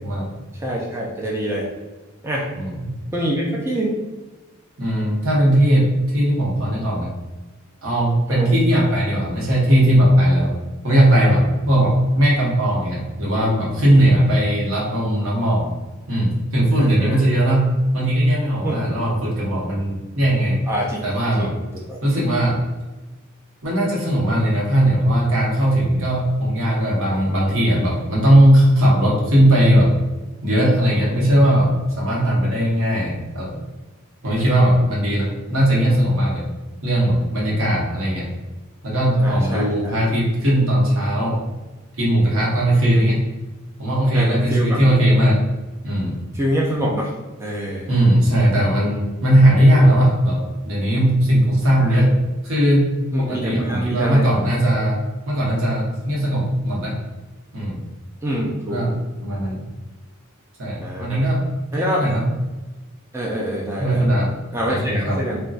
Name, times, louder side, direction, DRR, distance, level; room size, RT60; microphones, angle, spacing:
voice 1, 0.0-0.3 2.5-3.0 4.8-7.1 7.8-10.6 10.8-15.7 16.1-20.6 21.0-21.6 22.0-22.6 23.6-29.9 30.4-33.6 34.2-36.4 36.8-38.3 38.8-41.4 42.0-43.2 43.8-45.4 45.8-46.2 47.9-52.1 52.4-52.9 53.2-55.0 55.2-57.0 57.5-57.8 58.7-58.9 59.2-59.7 60.6-61.5 61.7-62.2 63.8-64.4 64.6-65.2, right 1 dB, 70° right, -4 dB, 0.9 m, -18 dB
voice 2, 0.6-1.7 2.2-2.4 3.1-4.0 8.3-8.5 16.8-17.2 18.6-19.0 20.7-21.0 21.3-21.6 21.9-22.0 37.4-37.6 39.2-40.0 42.9-43.1 44.1-44.8 46.3-47.1 47.4-47.9 51.9-52.0 53.1-54.3 58.2-58.8 60.8-61.2 61.7-62.0 63.1-64.0 64.5-65.4, equal, 10° right, -3 dB, 0.3 m, -25 dB
3.9 x 2.2 x 2.3 m, 1.2 s
head